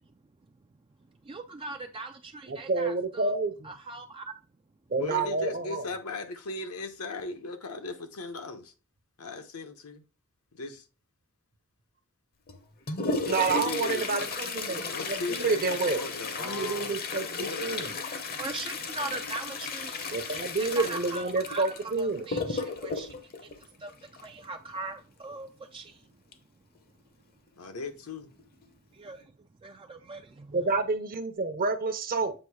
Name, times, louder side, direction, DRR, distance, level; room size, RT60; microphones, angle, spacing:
voice 1, 1.3-3.3 3.6-4.2 18.4-23.1 23.8-23.9 24.2-26.0 29.0-29.2 29.6-30.6, right 3 dB, 25° right, 0.4 m, -40 dB
voice 2, 2.5-3.7 4.9-5.8 13.2-16.0 16.4-18.0 20.1-22.3 30.5-32.3, right 3 dB, 40° right, 0.8 m, -29 dB
voice 3, 5.0-8.7 9.2-10.0 10.5-10.8 13.4-14.3 14.9-17.9 27.6-28.3, left 3 dB, 70° left, 0.9 m, -37 dB
Toilet flush, 12.5-24.4 26.3-26.4 26.8-26.9 27.6-27.7 28.4-28.6 29.1-29.2, left 4 dB, 45° left, 0.8 m, -34 dB
7.6 x 2.7 x 4.7 m
head